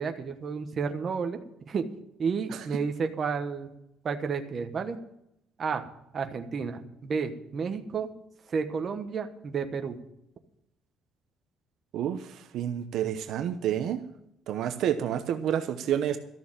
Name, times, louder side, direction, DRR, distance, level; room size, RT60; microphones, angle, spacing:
voice 1, 0.0-1.4 1.7-1.9 2.2-3.7 4.0-5.0 5.6-5.8 6.1-8.1 8.5-10.0, right 5 dB, 30° right, 6 dB, 1.1 m, -31 dB
voice 2, 12.5-14.0 14.5-16.2, right 10 dB, 60° right, 8 dB, 0.9 m, -29 dB
13.5 x 6.9 x 8.8 m, 0.80 s
cardioid pair, 165°, 0 cm